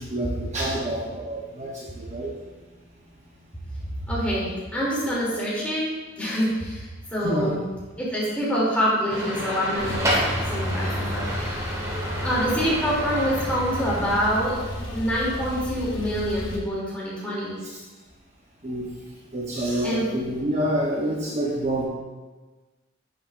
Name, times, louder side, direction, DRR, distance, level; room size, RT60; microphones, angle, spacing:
voice 1, 0.0-2.3 7.2-7.5 10.8-11.0 17.6-17.8 18.6-18.9 19.3-21.9, right 1 dB, 35° right, -3 dB, 0.9 m, -28 dB
voice 2, 4.1-7.6 8.0-11.9 12.2-14.6 14.9-17.6 19.8-20.1, equal, 5° left, -7 dB, 2.7 m, -26 dB
sound 1, 9.1-14.4, equal, 15° right, 1.4 m, -30 dB
Male speech man speaking / Car / Idling, 9.8-16.6, left 1 dB, 75° left, 2.2 m, -32 dB
10.5 x 7.8 x 2.5 m, 1.2 s
head